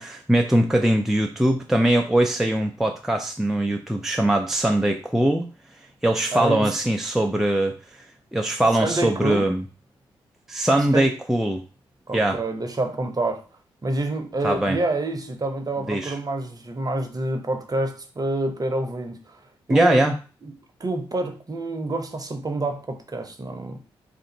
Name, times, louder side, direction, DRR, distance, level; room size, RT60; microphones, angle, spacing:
voice 1, 0.0-5.5 6.0-8.0 8.3-9.6 10.5-11.6 12.1-12.4 14.4-14.8 15.9-16.2 19.7-20.1, right 1 dB, 5° right, 0.4 m, -21 dB
voice 2, 6.3-6.7 8.8-9.5 10.9-11.1 12.1-13.4 13.8-19.4 19.7-20.0 20.4-20.5 20.8-23.8, right 2 dB, 30° right, 0.8 m, -27 dB
2.5 x 2.5 x 3.9 m
hypercardioid pair, 40°, 12 cm